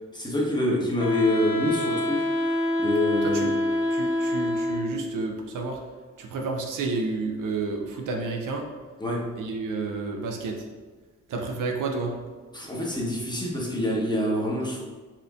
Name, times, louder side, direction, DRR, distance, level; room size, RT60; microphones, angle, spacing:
voice 1, 0.1-2.3 2.8-3.6 9.0-9.3 12.5-14.8, left 1 dB, 15° left, -3 dB, 1.0 m, -26 dB
Wind instrument woodwind instrument, 1.0-5.1, left 1 dB, 75° left, 0.6 m, -26 dB
voice 2, 3.9-5.8 6.2-8.6 9.4-10.7 11.3-12.2, right 3 dB, 65° right, 2 dB, 0.5 m, -30 dB
4.3 x 2.5 x 2.3 m, 1.4 s
hypercardioid pair, 40°, 34 cm